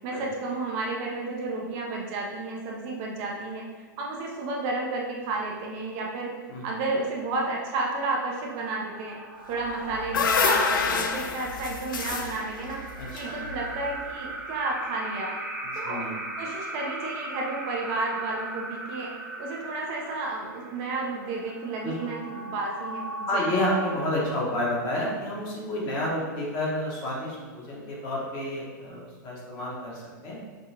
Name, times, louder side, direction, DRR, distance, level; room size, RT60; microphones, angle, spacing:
voice 1, 0.0-6.3 6.6-9.2 9.5-12.8 13.1-15.3 15.7-16.0 16.4-19.1 19.4-23.5, right 3 dB, 45° right, -2 dB, 0.8 m, -32 dB
sound 1, 7.7-25.1, right 2 dB, 15° right, 0.9 m, -39 dB
sound 2, 9.7-13.9, left 5 dB, 80° left, 0.4 m, -27 dB
voice 2, 13.0-13.3 15.8-16.2 21.8-21.9 23.3-30.4, left 1 dB, 35° left, -4 dB, 1.3 m, -30 dB
5.2 x 2.4 x 2.8 m, 1.5 s
hypercardioid pair, 120°, 11 cm